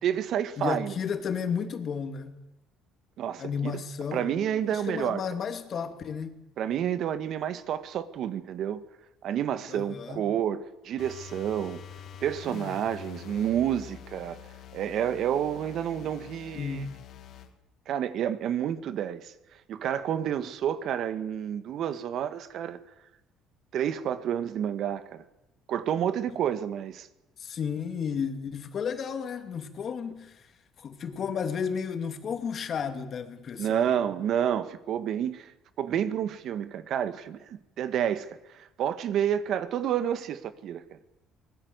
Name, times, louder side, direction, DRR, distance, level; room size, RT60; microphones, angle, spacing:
voice 1, 0.0-0.9 3.2-3.7 4.1-5.2 6.6-8.8 9.2-11.8 12.2-14.4 14.7-16.8 17.9-19.3 19.7-22.8 23.7-25.2 25.7-27.1 33.6-35.5 35.8-38.3 38.5-40.8, right 9 dB, 60° right, 1.7 m, -29 dB
voice 2, 0.6-2.4 3.4-6.4 9.7-10.2 16.5-16.9 27.4-30.5 30.8-33.9, left 6 dB, 45° left, 2.8 m, -33 dB
sound 1, 11.0-17.5, left 8 dB, 60° left, 2.7 m, -45 dB
24.0 x 20.0 x 8.2 m
cardioid pair, 110°, 0 cm